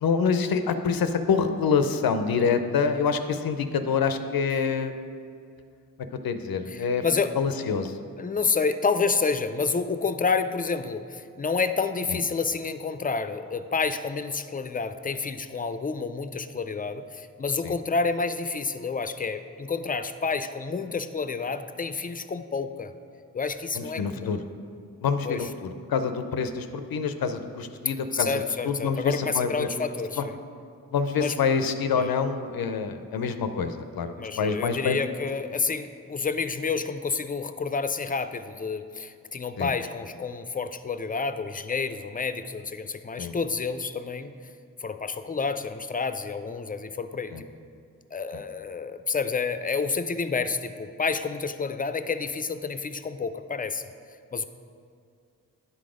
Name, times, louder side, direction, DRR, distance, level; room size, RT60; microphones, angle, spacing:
voice 1, 0.0-4.9 6.2-7.0 7.4-7.9 12.1-12.2 17.6-17.7 23.8-24.4 25.0-28.4 28.7-29.7 30.2-30.3 30.9-35.0 39.6-39.7 43.2-43.3 47.3-47.4, left 5 dB, 85° left, 9 dB, 0.5 m, -26 dB
voice 2, 6.7-7.4 8.2-22.9 23.3-24.4 25.2-25.5 27.8-30.4 31.2-31.4 31.9-32.1 34.2-44.3 44.8-47.4 48.1-53.8 54.3-54.4, left 4 dB, 25° left, 11 dB, 0.4 m, -29 dB
9.9 x 3.9 x 4.9 m, 2.4 s
cardioid pair, 45°, 35 cm